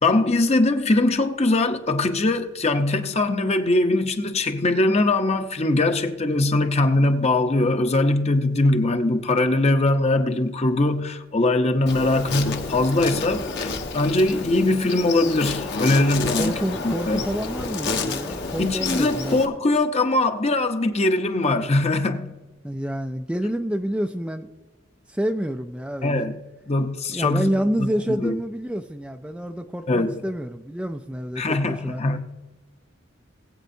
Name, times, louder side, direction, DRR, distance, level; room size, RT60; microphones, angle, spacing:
voice 1, 0.0-16.5 16.8-17.2 18.6-22.3 26.0-26.4 26.7-27.5 28.2-28.3 29.9-30.1 31.4-32.3, left 2 dB, 35° left, 0.8 m, -21 dB
Insect, 11.9-19.5, left 4 dB, 60° left, 1.3 m, -30 dB
voice 2, 16.4-19.4 22.6-24.5 25.1-26.3 27.1-32.0, equal, 5° right, 0.4 m, -28 dB
20.5 x 8.3 x 2.7 m
head